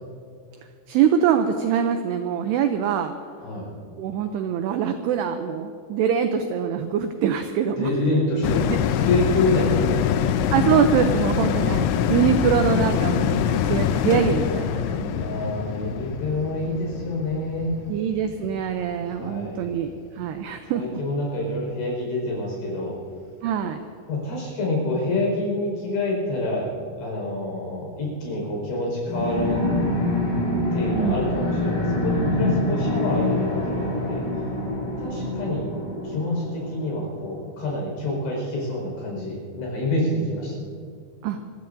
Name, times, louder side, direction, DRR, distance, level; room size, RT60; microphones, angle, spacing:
voice 1, 0.9-3.1 4.0-7.9 9.3-9.4 10.5-15.4 17.9-21.0 23.4-23.8 30.9-31.3 41.2-41.4, right 8 dB, 90° right, 7 dB, 2.3 m, -24 dB
voice 2, 7.7-10.4 15.2-17.8 19.1-19.6 20.7-23.0 24.1-26.7 27.0-29.6 30.7-34.2 35.0-35.7 36.0-40.6, left 1 dB, 65° left, -2 dB, 7.2 m, -27 dB
sound 1, 8.4-19.1 19.5-19.6, left 9 dB, 85° left, 2.8 m, -24 dB
sound 2, 29.1-37.2, left 1 dB, 30° left, 4.9 m, -25 dB
28.0 x 15.5 x 2.7 m, 2.4 s
omnidirectional pair, 5.6 m